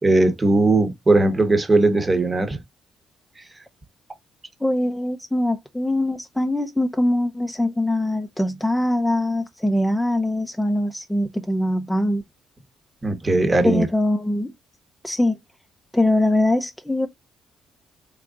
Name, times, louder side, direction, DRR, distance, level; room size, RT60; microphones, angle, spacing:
voice 1, 0.0-2.6 3.4-3.5 13.0-13.9, right 2 dB, 25° right, 1.0 m, -18 dB
voice 2, 4.6-12.2 13.6-14.5 15.0-15.4 15.9-17.1, left 1 dB, 5° left, 0.5 m, -22 dB
3.6 x 3.4 x 2.4 m
cardioid pair, 90°, 0 cm